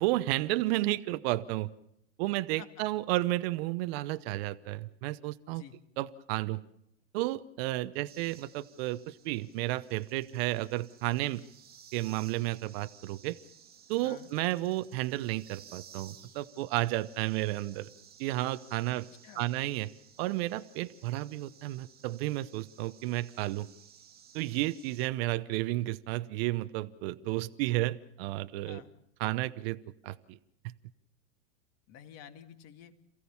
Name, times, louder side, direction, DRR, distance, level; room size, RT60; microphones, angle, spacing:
voice 1, 0.0-1.7 2.2-5.6 6.0-6.6 7.1-11.4 11.9-13.4 13.9-17.9 18.2-19.0 19.4-19.9 20.2-23.7 24.3-28.8 29.2-29.8 30.0-30.4, right 17 dB, 50° right, 12 dB, 0.9 m, -32 dB
sound 1, 8.1-25.1, right 7 dB, 25° right, 1.7 m, -57 dB
voice 2, 19.2-19.6 28.6-28.9 31.9-32.9, left 9 dB, 40° left, 7 dB, 2.2 m, -50 dB
28.0 x 16.0 x 7.1 m, 0.79 s
hypercardioid pair, 115°, 39 cm